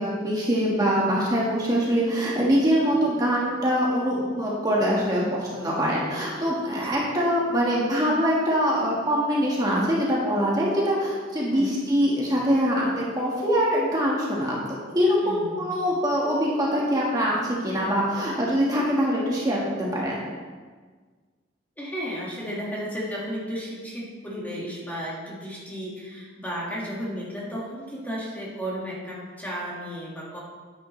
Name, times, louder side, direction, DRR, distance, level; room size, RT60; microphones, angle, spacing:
voice 1, 0.0-20.2, equal, 20° right, -5 dB, 1.7 m, -24 dB
voice 2, 15.2-15.6 21.8-30.4, equal, 10° left, -5 dB, 1.9 m, -34 dB
10.0 x 9.2 x 3.3 m, 1.5 s
head